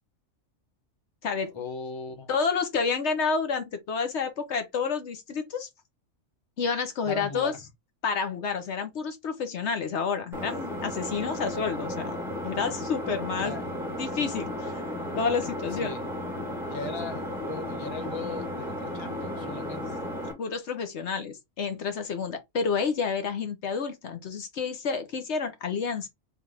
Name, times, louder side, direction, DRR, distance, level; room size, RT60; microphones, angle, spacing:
voice 1, 1.5-2.3 7.0-7.6 13.4-13.7 15.7-16.1 16.7-20.0, left 4 dB, 25° left, 0.8 m, -38 dB
voice 2, 2.3-5.7 6.6-7.5 8.0-12.2 12.4-13.5 14.0-14.8 15.2-15.9 20.4-26.1, left 5 dB, 65° left, 1.1 m, -29 dB
Engine, 10.3-20.3, left 1 dB, ahead, 1.6 m, -34 dB
3.5 x 3.2 x 3.5 m
omnidirectional pair, 1.3 m